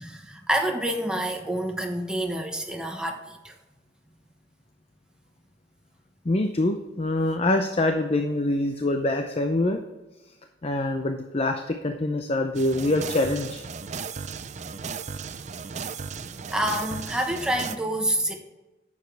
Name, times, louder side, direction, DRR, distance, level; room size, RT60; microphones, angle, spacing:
voice 1, 0.0-3.5 16.5-18.4, right 1 dB, 5° right, 2 dB, 1.1 m, -28 dB
voice 2, 6.3-9.8 10.6-13.6, left 2 dB, 35° left, 5 dB, 0.6 m, -25 dB
sound 1, 12.5-17.8, right 5 dB, 40° right, 0.5 m, -35 dB
10.5 x 7.3 x 3.4 m, 1.1 s
head